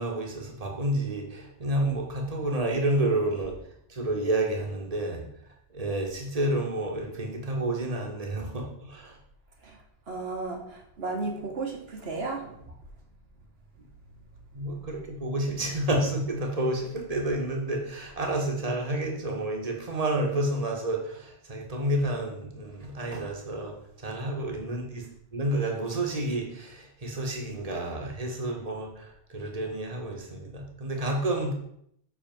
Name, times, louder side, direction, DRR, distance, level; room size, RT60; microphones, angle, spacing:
voice 1, 0.0-3.6 3.9-5.2 5.7-9.2 14.5-23.7 24.0-25.1 25.3-31.5, right 1 dB, 35° right, 0 dB, 1.6 m, -30 dB
voice 2, 10.1-12.6, right 3 dB, 65° right, 2 dB, 1.7 m, -34 dB
7.5 x 4.2 x 5.9 m, 0.70 s
omnidirectional pair, 1.1 m